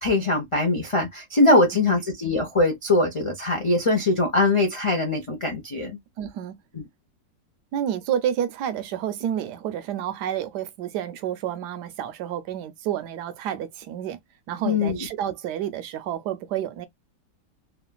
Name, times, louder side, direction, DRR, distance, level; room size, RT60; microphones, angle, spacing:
voice 1, 0.0-6.0 6.7-6.8 14.6-15.1, left 2 dB, 45° left, 0.4 m, -22 dB
voice 2, 6.2-6.6 7.7-14.2 14.5-16.9, right 10 dB, 75° right, 1.1 m, -29 dB
3.1 x 2.4 x 2.2 m
omnidirectional pair, 1.9 m